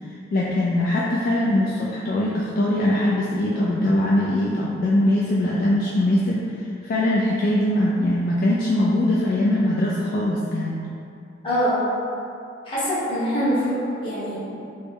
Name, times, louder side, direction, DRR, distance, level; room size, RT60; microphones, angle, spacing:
voice 1, 0.3-6.4 6.8-10.8, left 1 dB, 50° left, -6 dB, 0.3 m, -21 dB
voice 2, 11.4-11.8 12.7-14.5, equal, 30° left, -11 dB, 1.1 m, -24 dB
3.3 x 2.0 x 3.3 m, 2.6 s
head